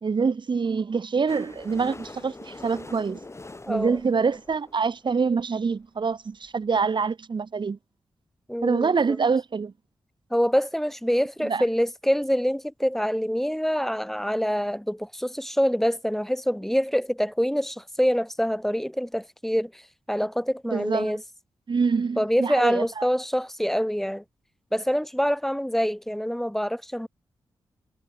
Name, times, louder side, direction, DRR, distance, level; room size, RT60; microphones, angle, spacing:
voice 1, 0.0-3.2 3.7-7.8 8.6-9.7 11.4-11.7 20.7-21.1 21.7-23.1, right 5 dB, 55° right, 3.4 m, -25 dB
sound 1, 1.3-5.1 5.8-5.9 6.1-6.2 6.4-6.5 6.8-6.9, left 2 dB, 30° left, 6.5 m, -43 dB
voice 2, 3.6-4.0 8.5-9.2 10.3-19.8 20.1-21.2 22.2-24.2 24.7-27.1, equal, 5° left, 2.8 m, -25 dB
cardioid pair, 50°, 10 cm